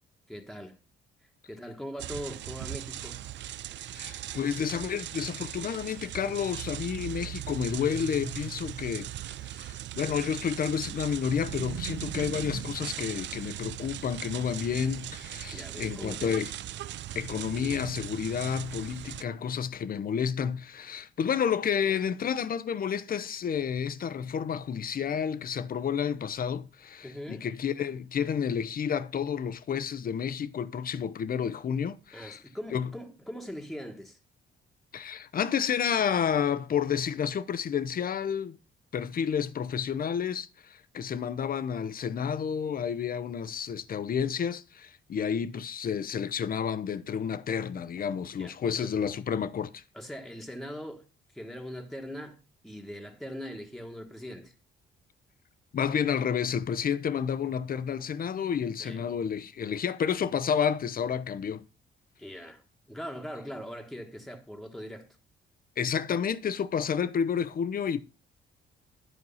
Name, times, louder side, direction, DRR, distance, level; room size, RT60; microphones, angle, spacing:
voice 1, 0.3-0.8 1.5-3.2 15.5-16.4 27.0-27.5 32.1-34.2 48.4-48.9 49.9-51.0 51.3-54.5 58.8-59.1 62.2-62.6 62.9-65.1, equal, ahead, 1.4 m, -41 dB
sound 1, 2.0-19.2, right 13 dB, 65° right, 0.5 m, -39 dB
voice 2, 4.0-9.1 9.4-16.5 17.1-32.4 32.7-32.9 34.9-38.6 38.9-49.8 55.7-61.7 65.8-68.0, left 7 dB, 45° left, 0.8 m, -30 dB
11.0 x 4.6 x 5.6 m
cardioid pair, 90°, 20 cm